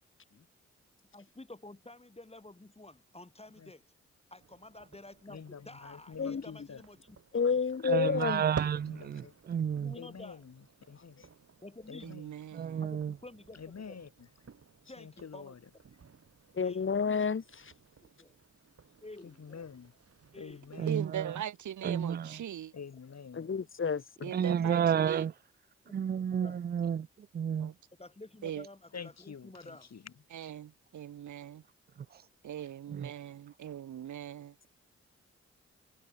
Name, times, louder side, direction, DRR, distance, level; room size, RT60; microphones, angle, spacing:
voice 1, 1.1-3.8 4.3-7.2 9.8-10.4 11.6-12.1 12.8-14.0 14.9-15.5 16.6-16.9 18.0-18.4 19.0-19.7 20.3-21.0 24.2-25.1 25.9-26.0 26.4-26.6 28.0-29.9, left 2 dB, 20° left, 4.4 m, -51 dB
sound 1, 4.4-21.0, right 6 dB, 50° right, 3.2 m, -51 dB
voice 2, 5.3-6.8 8.9-9.3 9.9-11.3 11.9-12.3 13.5-14.3 15.0-15.6 19.2-19.9 20.4-21.1 22.7-23.5 28.9-30.1, left 6 dB, 60° left, 7.2 m, -47 dB
voice 3, 7.3-8.4 16.5-17.7 23.3-24.3, left 5 dB, 45° left, 1.5 m, -30 dB
voice 4, 7.8-10.0 12.5-13.2 20.8-21.3 21.8-22.4 24.3-25.3 25.9-27.7 32.1-32.2 32.9-33.1, right 8 dB, 35° right, 0.5 m, -31 dB
voice 5, 12.0-12.8 20.9-22.7 24.2-25.2 27.6-27.7 28.4-28.7 30.3-31.6 32.4-34.7, right 10 dB, 75° right, 1.7 m, -40 dB
supercardioid pair, 45°, 30 cm